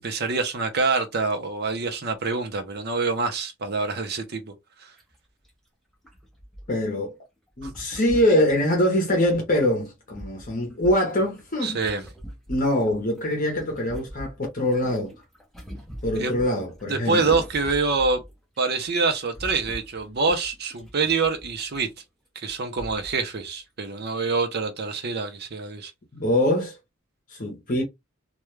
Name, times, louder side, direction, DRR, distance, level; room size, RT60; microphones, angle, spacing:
voice 1, 0.0-4.5 4.8-4.9 7.6-7.7 11.6-12.0 16.2-16.4 16.9-18.2 18.6-21.9 22.4-25.9, right 4 dB, 50° right, 0.7 m, -26 dB
sound 1, 5.0-5.1 5.4-5.5 6.0-7.0 7.6-9.3 9.8-13.2 13.5-18.3 18.6-18.9 19.1-21.8 22.5-22.6 22.8-23.2 23.7-23.8, equal, ahead, 0.6 m, -42 dB
voice 2, 6.7-7.1 7.6-11.8 12.5-15.1 16.0-17.4 26.1-26.7 27.3-27.8, left 1 dB, 40° left, 0.8 m, -23 dB
2.3 x 2.2 x 3.1 m
head